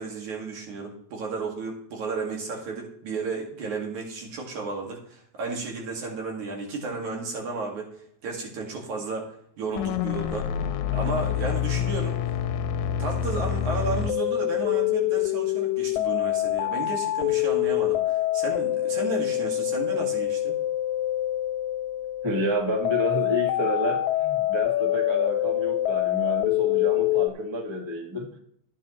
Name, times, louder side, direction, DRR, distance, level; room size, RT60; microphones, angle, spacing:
voice 1, 0.0-7.9 8.2-10.5 10.9-12.2 13.0-20.6, right 3 dB, 80° right, 0 dB, 3.5 m, -33 dB
sound 1, 9.7-27.3, left 13 dB, 90° left, 2.0 m, -26 dB
voice 2, 22.2-28.4, equal, 15° right, 1 dB, 1.2 m, -29 dB
14.0 x 9.1 x 3.2 m, 0.67 s
omnidirectional pair, 3.3 m